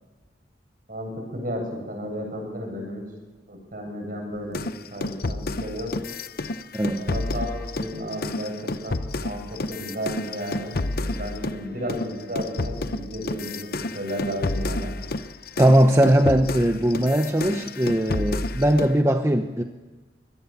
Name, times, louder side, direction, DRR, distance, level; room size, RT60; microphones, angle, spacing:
voice 1, 0.9-3.0 3.5-5.9 6.9-14.9, equal, 50° right, 2 dB, 7.9 m, -33 dB
sound 1, 4.5-11.6 11.9-19.0, left 2 dB, 55° left, 0.8 m, -30 dB
voice 2, 6.7-7.1 15.6-19.6, right 1 dB, 15° right, 5 dB, 0.9 m, -20 dB
23.5 x 18.0 x 7.3 m, 1.3 s
head